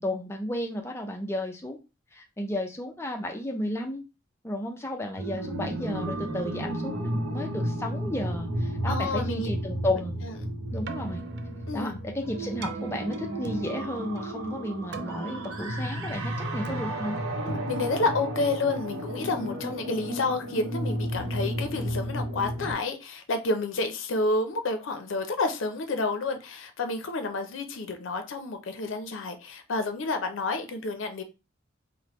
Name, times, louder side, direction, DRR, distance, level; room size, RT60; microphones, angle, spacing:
voice 1, 0.0-1.8 2.1-4.0 4.4-10.2 10.7-11.2 11.7-17.2, left 1 dB, 15° left, 2 dB, 0.4 m, -33 dB
sound 1, 5.2-22.7, right 1 dB, 85° right, 0.7 m, -33 dB
voice 2, 8.9-9.5 10.2-10.3 11.7-12.0 17.4-31.2, left 3 dB, 80° left, 6 dB, 0.5 m, -30 dB
Keyboard (musical), 10.7-18.9, right 4 dB, 55° right, 0.3 m, -43 dB
3.2 x 2.1 x 2.9 m, 0.28 s
head